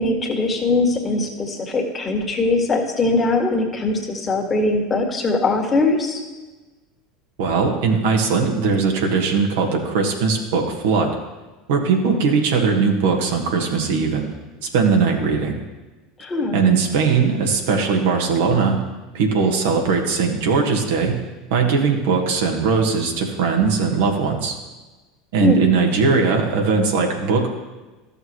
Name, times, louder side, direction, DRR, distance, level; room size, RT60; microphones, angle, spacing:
voice 1, 0.0-6.2 16.2-16.6 25.4-25.7, left 2 dB, 25° left, 2 dB, 1.8 m, -21 dB
voice 2, 7.4-11.1 11.7-14.3 14.6-15.6 16.5-18.8 19.1-21.1 21.5-24.5 25.3-27.5, right 5 dB, 70° right, 2 dB, 1.5 m, -19 dB
13.5 x 6.7 x 3.1 m, 1.2 s
hypercardioid pair, 75°, 0 cm